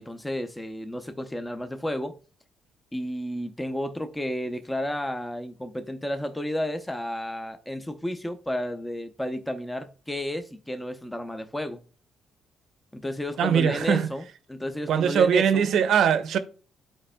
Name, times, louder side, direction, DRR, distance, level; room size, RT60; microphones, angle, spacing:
voice 1, 0.0-2.2 2.9-11.8 12.9-14.2 14.5-15.7, left 1 dB, 10° left, 0.6 m, -32 dB
voice 2, 13.4-14.1 14.9-16.4, right 8 dB, 75° right, 0.6 m, -21 dB
11.0 x 4.3 x 2.2 m
cardioid pair, 90°, 0 cm